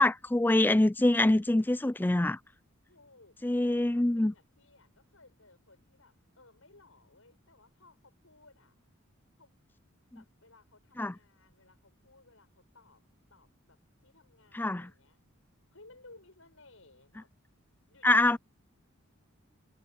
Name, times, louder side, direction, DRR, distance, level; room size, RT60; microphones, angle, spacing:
voice 1, 0.0-2.4 3.4-4.3 11.0-11.1 14.5-14.9 18.0-18.4, left 1 dB, 10° left, 0.4 m, -25 dB
voice 2, 2.9-8.7 9.4-9.5 10.1-13.0 13.3-15.2 15.7-17.3 17.9-18.4, left 2 dB, 75° left, 6.6 m, -60 dB
head